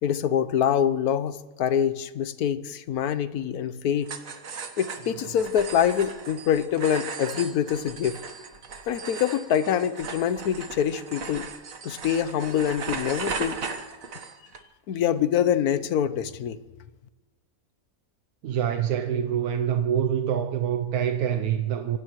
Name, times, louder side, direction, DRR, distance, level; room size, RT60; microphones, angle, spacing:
voice 1, 0.0-4.1 4.8-8.2 8.9-11.5 11.8-13.6 14.9-16.6, left 9 dB, 90° left, 1.2 m, -25 dB
sound 1, 4.0-14.6, right 5 dB, 65° right, 1.6 m, -37 dB
voice 2, 18.4-22.0, right 9 dB, 90° right, 1.3 m, -25 dB
26.0 x 17.5 x 3.1 m
omnidirectional pair, 1.6 m